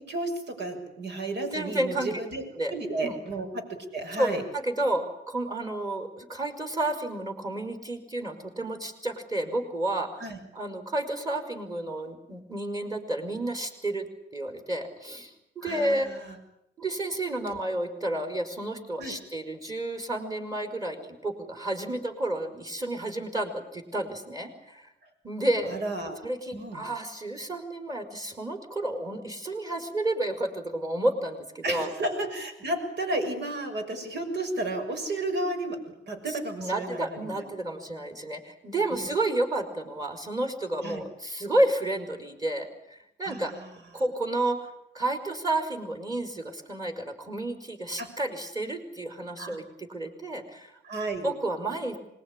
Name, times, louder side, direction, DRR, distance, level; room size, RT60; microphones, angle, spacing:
voice 1, 0.1-4.4 10.2-10.4 15.6-16.4 19.0-19.1 25.7-26.2 26.5-26.8 31.6-37.5 38.9-39.1 40.8-41.0 43.2-43.7 48.0-48.1 49.4-49.6 50.8-51.3, right 2 dB, 65° right, 6 dB, 6.3 m, -33 dB
voice 2, 1.5-2.1 2.6-2.7 3.0-3.2 4.2-10.2 10.5-14.1 14.3-16.1 16.8-24.9 25.2-25.8 26.2-31.9 36.3-43.5 43.9-50.8 51.2-52.0, right 1 dB, 20° right, 7 dB, 5.2 m, -31 dB
26.0 x 21.0 x 10.0 m, 0.81 s
cardioid pair, 130°, 19 cm